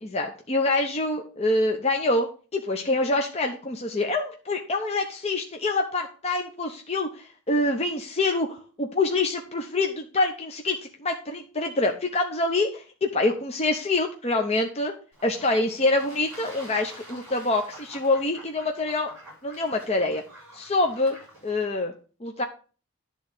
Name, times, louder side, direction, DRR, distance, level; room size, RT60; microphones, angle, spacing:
voice 1, 0.0-14.9 15.2-19.1 19.4-20.2 20.5-21.2 21.4-21.9 22.2-22.4, left 2 dB, 30° left, 3 dB, 0.7 m, -26 dB
Fowl / Bird / Water, 15.1-21.7, right 1 dB, 10° right, 5.6 m, -47 dB
10.0 x 3.8 x 6.7 m, 0.37 s
head